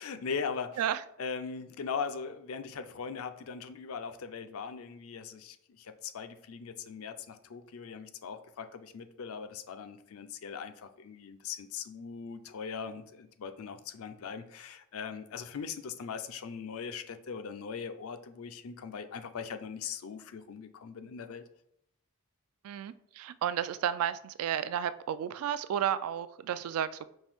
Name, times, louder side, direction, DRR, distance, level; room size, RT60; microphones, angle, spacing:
voice 1, 0.0-0.8 1.2-21.4, left 6 dB, 70° left, 10 dB, 0.4 m, -40 dB
voice 2, 22.6-27.1, right 9 dB, 80° right, 16 dB, 0.3 m, -32 dB
5.4 x 2.6 x 3.4 m, 0.73 s
head